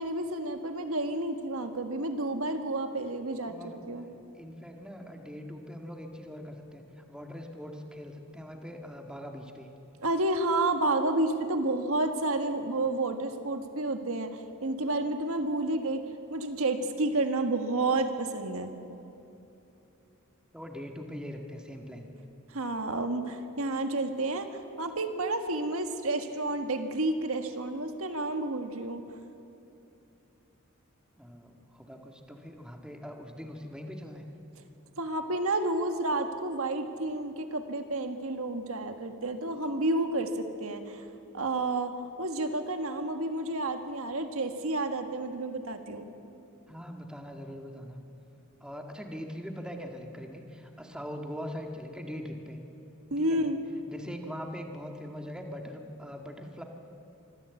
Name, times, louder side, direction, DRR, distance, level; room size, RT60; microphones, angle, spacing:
voice 1, 0.0-3.6 3.9-4.1 10.0-16.0 16.3-18.7 22.5-24.5 24.8-29.0 35.0-41.1 41.3-41.9 42.2-46.0 53.1-53.6, right 2 dB, 65° right, 7 dB, 1.6 m, -30 dB
voice 2, 3.4-3.8 4.4-9.7 20.5-22.1 31.2-34.3 46.7-48.0 48.6-52.6 53.2-53.4 53.9-56.6, equal, 5° right, 3 dB, 1.8 m, -42 dB
24.5 x 15.0 x 8.3 m, 2.8 s
head